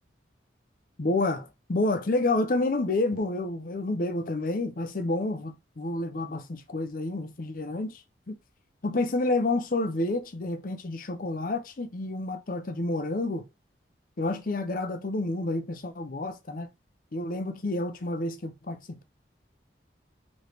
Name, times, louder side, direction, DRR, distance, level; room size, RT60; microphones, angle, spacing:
voice 1, 1.0-8.0 8.3-8.4 8.8-13.4 14.2-16.7 17.1-19.0, left 2 dB, 50° left, 0.6 m, -29 dB
5.0 x 3.2 x 2.9 m
head